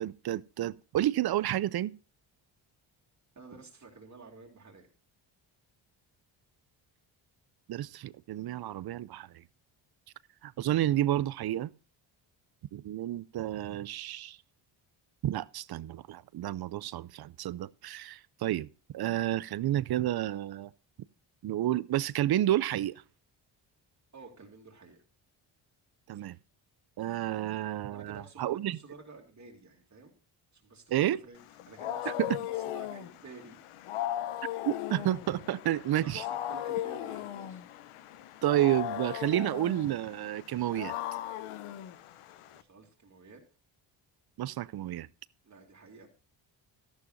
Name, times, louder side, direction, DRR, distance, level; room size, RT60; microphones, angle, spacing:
voice 1, 0.0-1.9 7.7-9.4 10.4-11.7 12.7-14.4 15.2-18.7 18.9-20.7 21.4-23.0 26.1-26.4 27.0-28.8 30.9-31.2 32.2-32.3 34.7-36.2 38.4-40.9 44.4-45.1, right 13 dB, 50° right, 0.5 m, -30 dB
voice 2, 3.3-4.9 24.1-25.0 27.9-30.1 30.5-31.4 31.7-33.6 34.1-34.3 35.9-37.6 42.5-43.4 45.4-46.1, right 4 dB, 35° right, 2.5 m, -51 dB
Wild animals, 31.4-42.6, left 13 dB, 80° left, 0.8 m, -38 dB
13.0 x 11.0 x 2.6 m
supercardioid pair, 65°, 50 cm